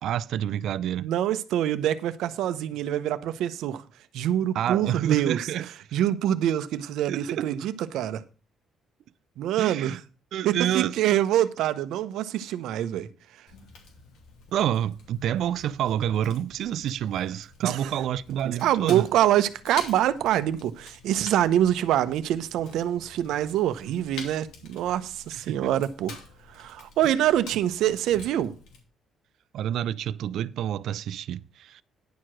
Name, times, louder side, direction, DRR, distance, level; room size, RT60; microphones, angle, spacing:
voice 1, 0.0-1.1 4.5-5.7 7.1-7.6 9.6-10.0 10.3-10.9 14.5-19.0 25.5-25.6 29.5-31.8, right 10 dB, 60° right, 0.4 m, -28 dB
voice 2, 1.0-3.8 4.1-5.5 5.9-8.2 9.4-10.0 10.4-13.1 17.6-17.9 18.4-26.1 26.5-28.5, right 11 dB, 80° right, 0.8 m, -25 dB
Fire, 13.5-28.8, left 4 dB, 80° left, 2.8 m, -47 dB
10.5 x 4.8 x 7.4 m
cardioid pair, 170°, 0 cm